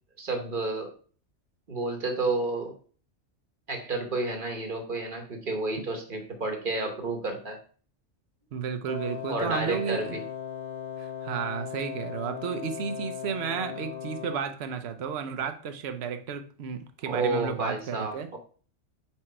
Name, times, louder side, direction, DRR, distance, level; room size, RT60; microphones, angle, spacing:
voice 1, 0.2-0.9 1.7-2.8 3.7-7.6 9.3-10.2 17.0-18.4, right 2 dB, 45° right, 3 dB, 1.2 m, -31 dB
voice 2, 8.5-10.2 11.0-18.3, right 7 dB, 65° right, 7 dB, 0.9 m, -33 dB
Wind instrument woodwind instrument, 8.9-14.6, left 9 dB, 35° left, 1.0 m, -37 dB
4.8 x 4.6 x 4.3 m, 0.42 s
omnidirectional pair, 1.2 m